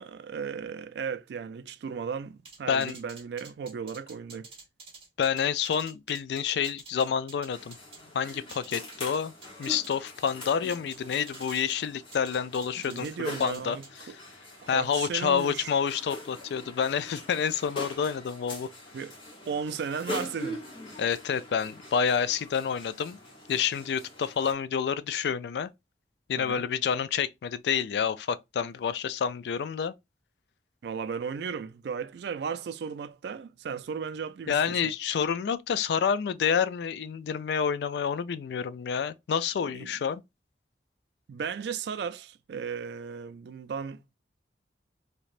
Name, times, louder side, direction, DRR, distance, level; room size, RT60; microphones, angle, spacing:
voice 1, 0.0-4.5 12.9-14.1 14.6-15.7 18.9-19.1 19.5-20.6 26.4-26.7 30.8-34.8 39.7-39.9 41.3-44.0, right 6 dB, 70° right, 0.3 m, -35 dB
sound 1, 2.5-8.0 8.3-10.0 10.3-11.8 12.1-13.1 13.4-13.9, right 4 dB, 35° right, 1.2 m, -48 dB
voice 2, 5.2-7.7 8.1-9.3 9.6-13.1 13.4-13.8 14.0-14.1 14.7-18.7 21.0-23.2 23.5-25.7 26.3-29.9 34.5-40.2, left 7 dB, 70° left, 0.3 m, -28 dB
sound 2, 7.5-24.5, left 1 dB, 30° left, 1.1 m, -43 dB
3.2 x 2.8 x 2.5 m
head